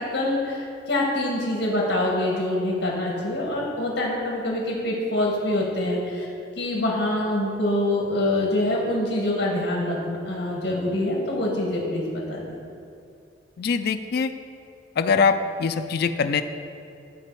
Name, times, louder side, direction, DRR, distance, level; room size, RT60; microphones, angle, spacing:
voice 1, 0.1-6.3 6.6-12.6, left 1 dB, 80° left, -3 dB, 1.5 m, -25 dB
voice 2, 13.6-14.3 15.0-16.4, left 5 dB, 60° left, 8 dB, 0.3 m, -23 dB
12.0 x 4.1 x 4.6 m, 2.5 s
head